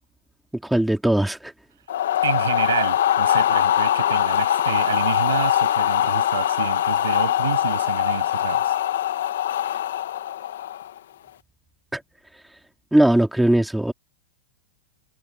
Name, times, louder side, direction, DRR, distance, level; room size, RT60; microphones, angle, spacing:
voice 1, 0.6-1.5 11.9-12.0 12.9-13.9, right 1 dB, 5° right, 2.9 m, -19 dB
sound 1, 1.9-11.0, left 11 dB, 75° left, 1.4 m, -22 dB
voice 2, 2.2-8.7, right 10 dB, 85° right, 7.8 m, -29 dB
hypercardioid pair, 130°, 0 cm